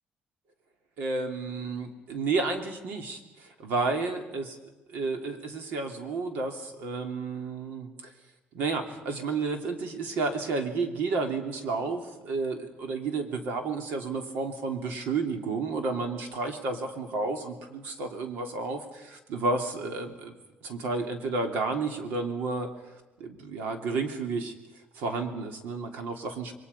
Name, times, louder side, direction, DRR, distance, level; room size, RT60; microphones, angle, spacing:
voice 1, 1.0-4.5 4.9-8.1 8.5-20.4 20.6-22.7 23.2-24.5 24.9-26.5, right 3 dB, 70° right, 5 dB, 3.1 m, -31 dB
28.0 x 22.5 x 5.6 m, 1.1 s
cardioid pair, 175°, 3 cm